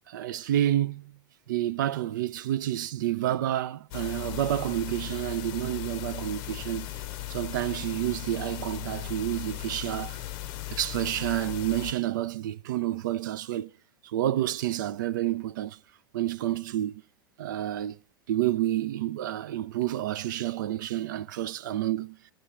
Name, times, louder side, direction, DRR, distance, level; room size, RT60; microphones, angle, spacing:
voice 1, 0.1-1.2 1.5-6.9 7.3-10.2 10.7-13.7 14.0-15.8 16.1-16.9 17.4-18.0 18.3-22.2, right 13 dB, 55° right, 0.5 m, -29 dB
sound 1, 3.9-11.9, left 15 dB, 40° left, 0.7 m, -37 dB
12.5 x 10.5 x 4.3 m
figure-of-eight pair, 90°, 12 cm